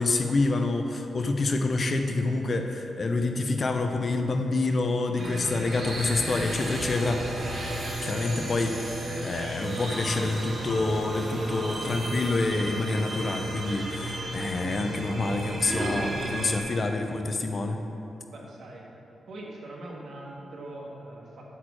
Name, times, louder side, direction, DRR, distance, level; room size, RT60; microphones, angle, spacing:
voice 1, 0.0-7.2 8.0-17.8, left 3 dB, 40° left, 5 dB, 0.6 m, -27 dB
sound 1, 5.2-16.6, right 1 dB, 50° right, 1.7 m, -33 dB
voice 2, 18.3-18.9 19.3-21.5, right 1 dB, 70° right, -2 dB, 1.5 m, -42 dB
8.9 x 4.3 x 6.2 m, 2.9 s
wide cardioid pair, 115°, 0 cm